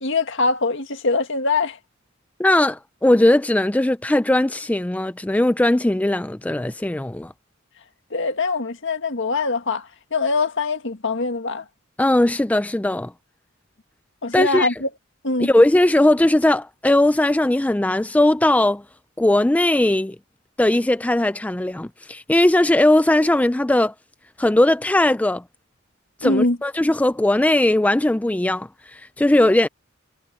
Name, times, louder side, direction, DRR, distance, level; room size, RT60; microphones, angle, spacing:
voice 1, 0.0-1.8 8.1-11.6 14.2-14.9 15.2-15.5 26.2-26.6, left 3 dB, 65° left, 1.9 m, -23 dB
voice 2, 2.4-7.3 12.0-13.1 14.3-14.7 15.4-18.8 19.2-20.2 20.6-23.9 24.4-25.4 26.2-29.7, left 1 dB, 5° left, 0.4 m, -18 dB
head